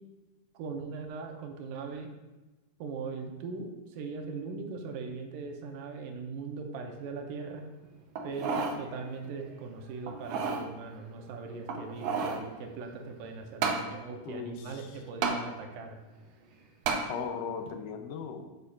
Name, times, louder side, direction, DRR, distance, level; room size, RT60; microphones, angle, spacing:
voice 1, 0.5-2.1 2.8-7.7 8.2-16.0, right 4 dB, 85° right, 3 dB, 2.4 m, -40 dB
sound 1, 8.2-8.8 9.2-9.3 10.1-10.6 11.6-12.4 13.6-13.8 15.2-15.4 16.9-17.1 17.7-17.8, right 5 dB, 70° right, 1.6 m, -30 dB
voice 2, 14.3-15.0 17.1-18.4, left 6 dB, 85° left, 6 dB, 2.3 m, -38 dB
8.4 x 8.0 x 2.4 m, 1.1 s
omnidirectional pair, 3.7 m